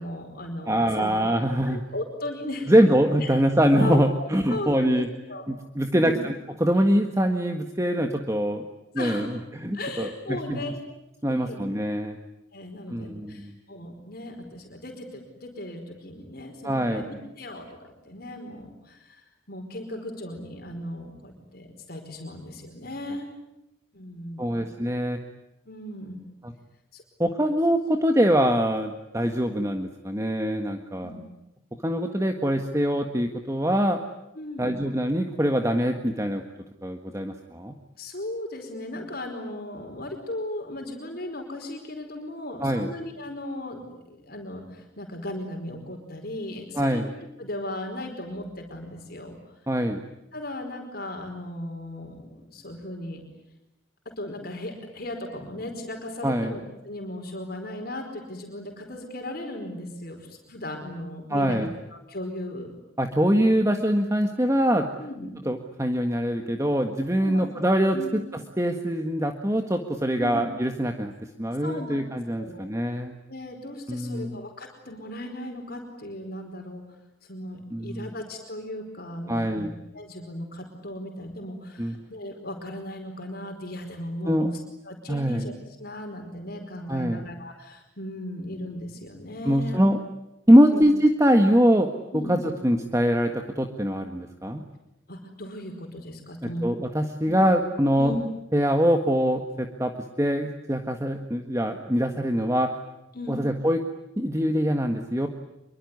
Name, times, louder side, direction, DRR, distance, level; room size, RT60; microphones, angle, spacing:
voice 1, 0.0-1.1 1.5-2.7 3.2-3.3 3.8-5.5 5.9-6.2 9.0-9.4 9.7-10.8 11.3-11.6 12.5-23.3 23.9-24.7 25.7-26.2 26.9-27.0 31.0-31.2 34.3-34.8 38.0-49.6 50.3-53.2 54.2-56.6 56.8-62.7 65.0-65.3 67.2-67.5 67.9-68.1 70.2-70.4 71.6-72.0 72.4-72.7 73.3-76.8 77.2-79.7 79.9-85.5 85.8-89.8 90.7-90.9 92.1-92.4 95.1-96.7 97.2-97.5 98.0-98.2 103.1-103.4, left 1 dB, 50° left, 3 dB, 4.7 m, -36 dB
voice 2, 0.7-1.8 2.7-5.1 5.5-6.3 6.6-8.6 8.9-10.1 10.5-10.6 11.2-12.2 12.9-13.5 16.6-17.0 24.4-25.2 26.4-26.5 27.2-31.1 31.8-34.0 34.6-36.4 36.8-37.7 42.6-42.9 46.7-47.0 49.7-50.0 56.2-56.5 61.3-61.7 63.0-64.9 65.5-68.0 68.6-71.1 71.4-73.1 73.9-74.3 77.7-78.1 79.3-79.7 81.8-82.0 84.2-84.5 85.1-85.4 86.9-87.2 89.4-90.0 90.5-91.9 92.3-94.6 96.4-98.1 98.5-99.9 100.2-102.7 103.3-103.8 104.2-105.3, equal, 15° right, 5 dB, 1.6 m, -23 dB
25.5 x 24.0 x 9.6 m, 0.90 s
head